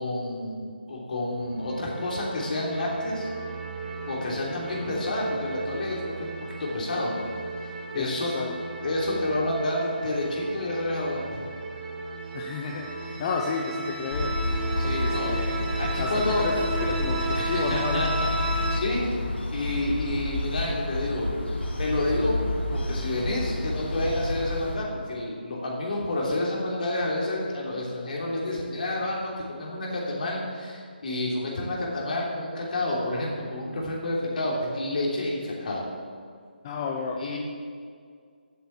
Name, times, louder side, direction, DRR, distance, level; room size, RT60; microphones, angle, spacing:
voice 1, 0.0-3.3 4.1-6.3 6.6-7.2 7.9-8.3 8.8-11.4 14.8-16.4 17.3-18.1 18.4-19.1 19.5-21.3 21.8-22.4 22.7-35.9 37.2-37.4, left 1 dB, 50° left, -4 dB, 3.3 m, -29 dB
sound 1, 1.4-18.8, right 3 dB, 45° right, 2.8 m, -34 dB
voice 2, 7.9-8.6 12.3-14.3 15.0-15.5 16.0-16.5 16.8-18.1 36.6-37.4, left 5 dB, 25° left, 0 dB, 0.7 m, -32 dB
sound 2, 14.1-24.8, left 2 dB, 75° left, 2.3 m, -30 dB
11.0 x 8.1 x 7.2 m, 2.2 s
figure-of-eight pair, 165°, 6 cm